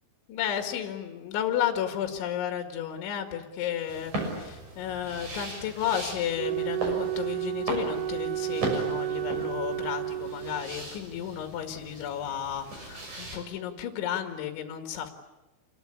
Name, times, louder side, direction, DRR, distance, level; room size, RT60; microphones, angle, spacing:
voice 1, 0.3-15.1, left 10 dB, 70° left, 5 dB, 4.2 m, -33 dB
sound 1, 3.9-13.4, right 2 dB, 35° right, 7.5 m, -38 dB
Wind instrument woodwind instrument, 6.3-10.8, right 14 dB, 75° right, 3.8 m, -32 dB
28.0 x 21.0 x 9.8 m, 1.1 s
omnidirectional pair, 5.8 m